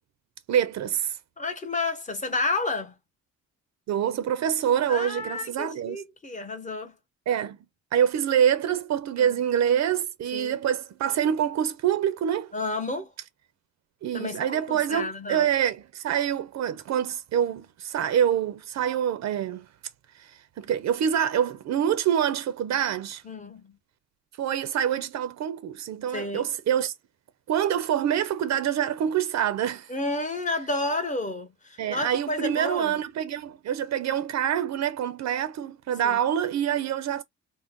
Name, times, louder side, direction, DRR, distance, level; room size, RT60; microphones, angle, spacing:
voice 1, 0.5-1.2 3.9-6.0 7.3-7.6 7.9-12.5 14.0-19.7 20.2-23.2 24.4-26.9 27.5-29.9 31.8-37.2, right 9 dB, 65° right, 0.6 m, -26 dB
voice 2, 1.4-2.9 4.9-7.0 9.2-9.4 10.3-10.6 12.5-13.1 14.1-15.5 23.2-23.8 26.1-26.5 29.9-33.0 36.0-36.2, left 2 dB, 25° left, 1.0 m, -31 dB
2.6 x 2.1 x 3.5 m
cardioid pair, 90°, 30 cm